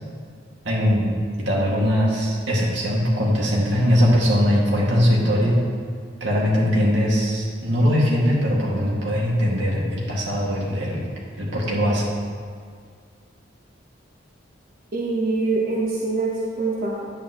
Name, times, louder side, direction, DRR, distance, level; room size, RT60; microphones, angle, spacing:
voice 1, 0.6-1.1 1.5-5.6 6.2-11.0 11.4-12.1, equal, 80° right, -4 dB, 2.1 m, -20 dB
voice 2, 14.9-17.0, right 3 dB, 50° right, -6 dB, 1.2 m, -24 dB
10.5 x 9.1 x 3.1 m, 2.1 s
head